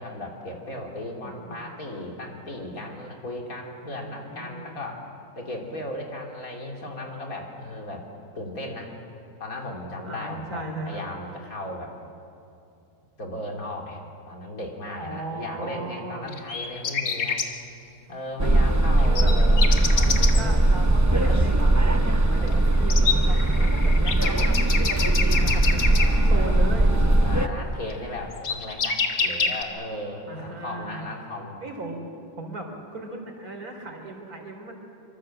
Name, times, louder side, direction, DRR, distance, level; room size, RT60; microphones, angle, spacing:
voice 1, 0.0-5.0 5.3-8.1 8.3-8.9 9.4-11.9 13.2-17.4 18.1-20.7 21.1-21.4 22.3-22.7 25.3-26.6 27.2-31.6, left 1 dB, 65° left, 0 dB, 3.5 m, -36 dB
voice 2, 1.2-1.6 3.9-4.7 10.0-11.0 15.0-16.3 19.0-19.3 20.2-26.9 30.3-31.0 31.6-34.7, right 2 dB, 75° right, 2 dB, 4.2 m, -37 dB
sound 1, 16.3-17.4 19.0-20.4 22.5-22.6 22.9-26.1 27.9-28.0 28.3-29.6, left 5 dB, 80° left, 2.1 m, -26 dB
sound 2, 18.4-27.5, right 1 dB, 15° right, 0.7 m, -20 dB
25.0 x 25.0 x 7.7 m, 2.5 s
omnidirectional pair, 1.6 m